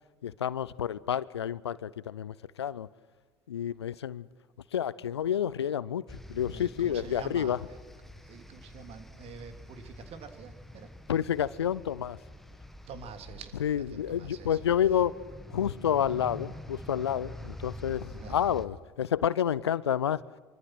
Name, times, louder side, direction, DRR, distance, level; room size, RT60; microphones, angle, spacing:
voice 1, 0.2-2.9 3.5-4.3 4.7-7.6 11.1-12.2 13.6-15.1 15.5-20.2, left 9 dB, 80° left, 0.6 m, -29 dB
sound 1, 6.1-18.7, left 1 dB, ahead, 1.9 m, -46 dB
voice 2, 6.5-7.8 8.2-10.9 12.9-13.6 13.9-14.6 18.2-18.5, right 5 dB, 45° right, 3.0 m, -46 dB
25.5 x 24.5 x 6.1 m
figure-of-eight pair, 65°, 14 cm